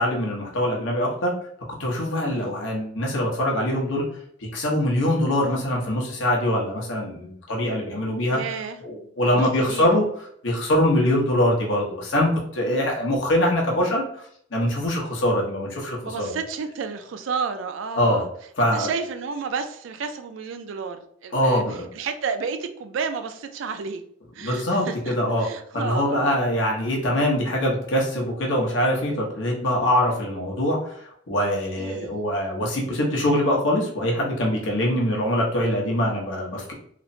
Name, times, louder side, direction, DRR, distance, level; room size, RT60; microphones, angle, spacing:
voice 1, 0.0-1.3 1.8-4.0 4.4-8.4 8.8-10.0 10.4-16.4 18.0-18.2 18.6-18.9 21.3-21.9 24.4-25.5 25.7-36.7, left 1 dB, 75° left, -2 dB, 0.9 m, -23 dB
voice 2, 8.3-8.8 9.2-9.9 16.0-18.3 18.7-24.0 24.3-26.3 31.8-32.2, right 5 dB, 80° right, 8 dB, 0.4 m, -32 dB
3.1 x 2.0 x 2.6 m, 0.65 s
head